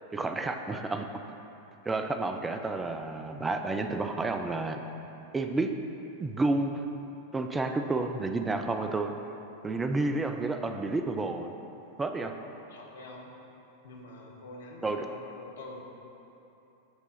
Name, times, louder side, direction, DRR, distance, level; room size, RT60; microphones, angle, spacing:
voice 1, 0.1-1.1 1.9-4.8 5.3-5.7 6.2-6.8 7.3-9.1 9.6-11.5 12.0-12.3 14.8-15.1, right 3 dB, 15° right, 6 dB, 0.4 m, -30 dB
voice 2, 12.4-13.3 13.8-15.8, left 2 dB, 65° left, 0 dB, 0.9 m, -46 dB
6.2 x 3.6 x 5.7 m, 3.0 s
figure-of-eight pair, 90°, 0 cm